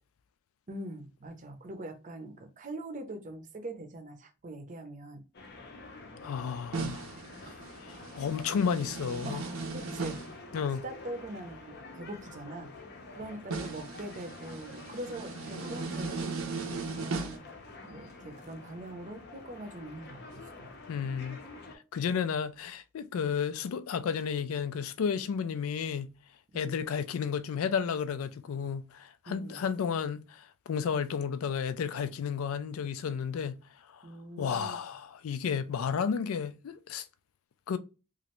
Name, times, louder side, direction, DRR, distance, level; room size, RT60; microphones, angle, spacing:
voice 1, 0.7-5.2 7.4-7.7 8.0-8.1 9.2-12.7 13.1-16.4 17.0-17.5 17.8-20.7 21.1-21.4 26.5-26.8 29.3-29.6 34.0-34.8, right 1 dB, 40° right, 0.6 m, -43 dB
sound 1, 5.3-21.8, left 3 dB, 55° left, 0.6 m, -48 dB
voice 2, 6.2-7.1 7.5-7.6 7.8-9.4 10.5-10.8 20.9-21.4 21.9-26.1 26.5-33.6 33.9-34.1 34.4-37.0 37.7-37.8, left 6 dB, 90° left, 0.4 m, -32 dB
sound 2, 6.7-10.4 13.5-17.4, right 4 dB, 85° right, 0.6 m, -37 dB
3.0 x 2.5 x 2.9 m
head